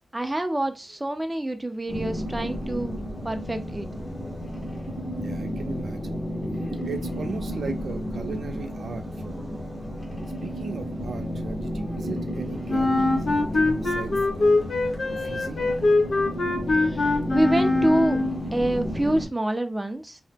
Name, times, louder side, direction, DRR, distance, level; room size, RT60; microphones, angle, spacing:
voice 1, 0.1-3.0 3.2-3.9 16.9-18.2 18.5-20.2, right 1 dB, 15° right, 6 dB, 0.5 m, -26 dB
sound 1, 1.9-19.3, equal, 35° left, 1.1 m, -32 dB
voice 2, 5.2-6.2 6.8-9.4 10.4-14.6 15.1-15.6, right 4 dB, 85° right, 5 dB, 0.5 m, -37 dB
Wind instrument woodwind instrument, 12.7-18.4, left 2 dB, 65° left, 0.7 m, -23 dB
2.8 x 2.1 x 3.4 m, 0.27 s
wide cardioid pair, 100°, 0 cm